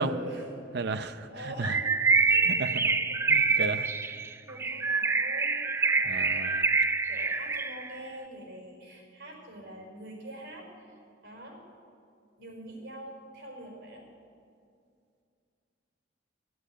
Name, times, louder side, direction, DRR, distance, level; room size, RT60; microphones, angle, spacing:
voice 1, 0.0-1.9 2.3-3.2 3.6-5.7 5.9-6.6 7.1-10.9 11.2-11.6 12.4-14.1, right 1 dB, 80° right, 1 dB, 4.8 m, -45 dB
voice 2, 0.7-1.3 1.6-1.7 2.5-2.9 3.3-3.9 6.1-6.7, right 3 dB, 60° right, 11 dB, 0.6 m, -33 dB
Bird, 1.6-7.9, right 4 dB, 15° right, 0.3 m, -26 dB
12.0 x 9.7 x 9.9 m, 2.4 s
head